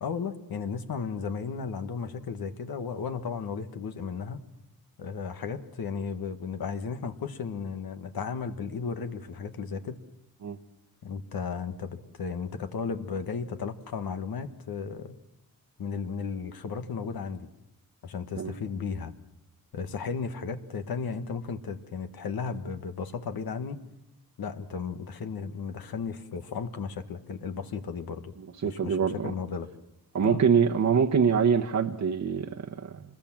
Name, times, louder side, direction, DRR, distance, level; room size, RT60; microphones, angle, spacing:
voice 1, 0.0-4.4 5.0-10.0 11.0-15.1 15.8-17.5 18.0-19.1 19.7-23.8 24.4-28.3 28.6-29.7 30.2-30.4, left 5 dB, 80° left, 8 dB, 1.7 m, -34 dB
voice 2, 28.4-29.3 30.1-33.0, right 6 dB, 55° right, 3 dB, 1.1 m, -25 dB
26.5 x 21.0 x 7.5 m, 0.89 s
wide cardioid pair, 110°, 36 cm